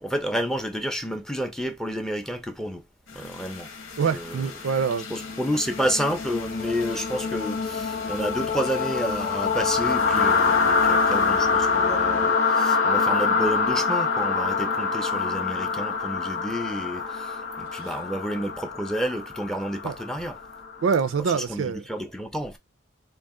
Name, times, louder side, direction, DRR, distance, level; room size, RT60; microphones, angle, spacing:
voice 1, 0.0-2.9 3.1-3.7 4.1-4.5 5.1-20.4 21.3-22.6, equal, 5° left, 0.4 m, -30 dB
sound 1, 3.2-21.0, left 4 dB, 85° left, 1.1 m, -26 dB
voice 2, 4.0-5.1 17.8-17.9 19.8-19.9 20.8-21.8, right 6 dB, 75° right, 0.4 m, -25 dB
3.7 x 2.4 x 3.5 m
head